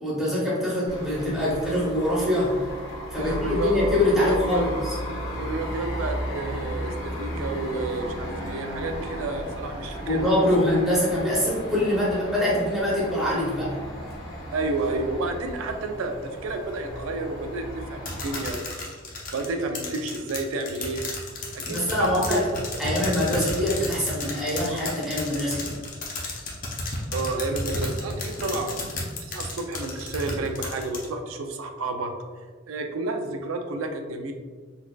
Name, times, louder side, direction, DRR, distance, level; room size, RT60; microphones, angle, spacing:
voice 1, 0.0-2.5 3.1-4.9 10.1-13.8 21.7-22.4 22.8-25.8, left 1 dB, ahead, -8 dB, 0.7 m, -24 dB
sound 1, 0.9-18.5, equal, 65° left, 1.1 m, -35 dB
voice 2, 3.1-3.8 4.1-4.7 5.4-10.5 14.5-18.6 19.3-21.0 21.5-22.4 22.7-22.8 27.1-28.7 29.2-32.1 32.7-34.3, right 2 dB, 80° right, 5 dB, 0.4 m, -31 dB
sound 2, 18.1-31.0, left 2 dB, 40° left, 0.6 m, -32 dB
4.0 x 2.5 x 2.3 m, 1.5 s
head